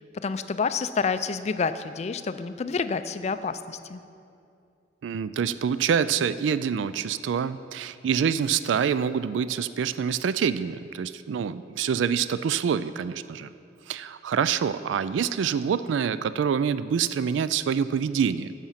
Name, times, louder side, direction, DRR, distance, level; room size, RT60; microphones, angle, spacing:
voice 1, 0.2-4.0, left 5 dB, 35° left, 12 dB, 0.4 m, -28 dB
voice 2, 5.0-13.5 13.9-18.5, right 7 dB, 80° right, 14 dB, 0.3 m, -26 dB
10.5 x 7.3 x 5.7 m, 2.5 s
head